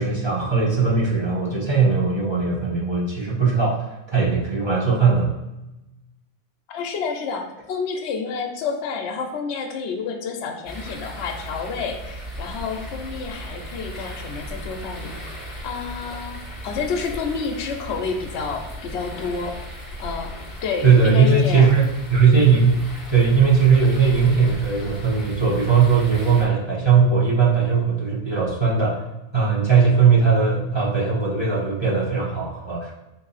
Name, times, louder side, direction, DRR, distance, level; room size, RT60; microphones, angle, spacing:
voice 1, 0.0-5.3 20.8-22.8 23.1-29.0 29.3-32.9, right 5 dB, 30° right, -6 dB, 0.7 m, -19 dB
voice 2, 6.7-15.2 15.6-16.4 16.6-19.6 20.0-20.3 20.6-21.7, left 5 dB, 70° left, 3 dB, 0.8 m, -29 dB
sound 1, 10.6-26.4, equal, 15° left, 1.2 m, -36 dB
4.1 x 2.7 x 4.0 m, 0.96 s
omnidirectional pair, 1.3 m